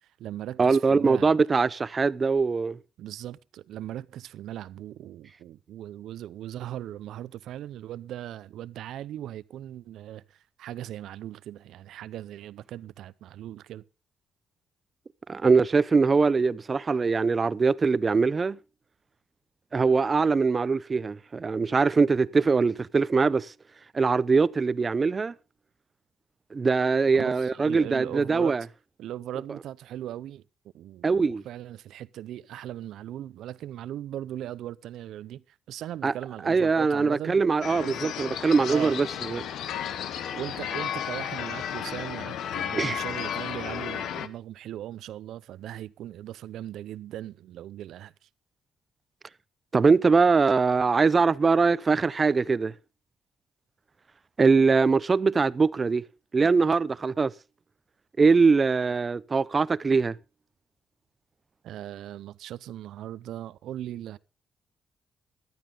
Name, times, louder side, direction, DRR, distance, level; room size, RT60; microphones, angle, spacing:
voice 1, 0.0-1.4 3.0-13.8 27.1-28.6 29.0-30.4 30.7-37.4 37.8-38.2 38.7-39.0 40.3-48.3 61.6-64.2, right 12 dB, 80° right, 0.6 m, -39 dB
voice 2, 0.6-2.8 15.3-18.6 19.7-23.5 23.9-25.3 26.5-28.6 31.0-31.4 36.0-36.1 36.5-39.4 42.8-43.0 49.7-52.7 54.4-56.0 56.3-57.3 58.2-60.2, right 4 dB, 35° right, 0.5 m, -22 dB
sound 1, 37.6-44.3, left 9 dB, 75° left, 1.0 m, -33 dB
15.0 x 12.0 x 3.9 m
cardioid pair, 90°, 0 cm